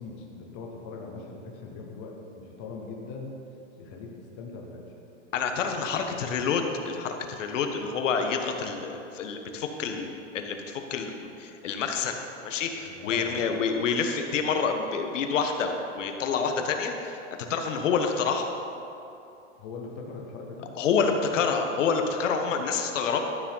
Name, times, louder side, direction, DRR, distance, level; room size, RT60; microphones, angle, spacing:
voice 1, 0.0-3.3 3.8-4.9 5.9-6.1 12.7-13.7 19.6-20.7 22.4-22.6, left 4 dB, 10° left, 0 dB, 0.3 m, -41 dB
voice 2, 5.3-12.2 12.4-17.2 17.5-18.5 20.8-23.2, left 5 dB, 75° left, 4 dB, 1.4 m, -28 dB
12.5 x 7.2 x 5.6 m, 2.8 s
supercardioid pair, 165°, 38 cm